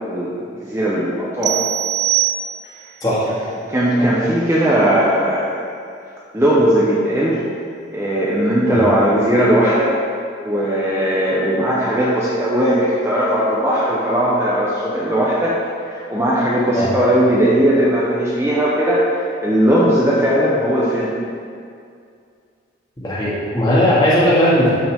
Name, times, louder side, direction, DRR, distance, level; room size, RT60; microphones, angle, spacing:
voice 1, 0.0-1.7 3.3-3.4 3.7-5.6 6.3-7.4 7.9-9.9 10.4-15.6 15.9-21.1, right 1 dB, 15° right, -7 dB, 0.9 m, -18 dB
sound 1, 1.4-2.9, right 13 dB, 60° right, 0.3 m, -21 dB
voice 2, 23.0-24.7, equal, 20° left, -9 dB, 2.3 m, -17 dB
12.0 x 5.6 x 3.7 m, 2.3 s
head